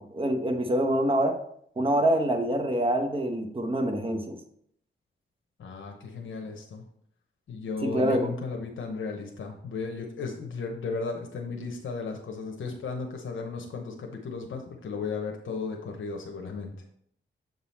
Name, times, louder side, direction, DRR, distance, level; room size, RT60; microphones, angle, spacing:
voice 1, 0.0-1.4 1.8-4.4 7.8-8.3, right 1 dB, 25° right, 4 dB, 1.0 m, -25 dB
voice 2, 5.6-6.8 7.5-16.7, left 4 dB, 75° left, 2 dB, 0.9 m, -35 dB
7.4 x 3.9 x 4.3 m, 0.68 s
wide cardioid pair, 100°, 20 cm